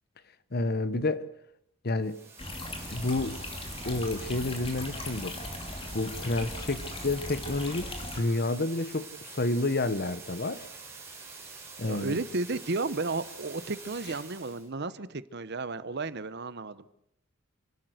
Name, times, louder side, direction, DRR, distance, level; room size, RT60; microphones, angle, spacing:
voice 1, 0.5-1.3 1.8-2.2 2.9-3.4 3.8-5.4 5.9-10.7 11.8-12.2, left 2 dB, 45° left, 1.1 m, -30 dB
sound 1, 2.0-14.7, right 4 dB, 10° right, 5.9 m, -46 dB
sound 2, 2.4-8.2, left 2 dB, 25° left, 2.8 m, -39 dB
voice 2, 11.8-16.9, right 3 dB, 50° right, 0.9 m, -33 dB
28.5 x 12.5 x 7.9 m
head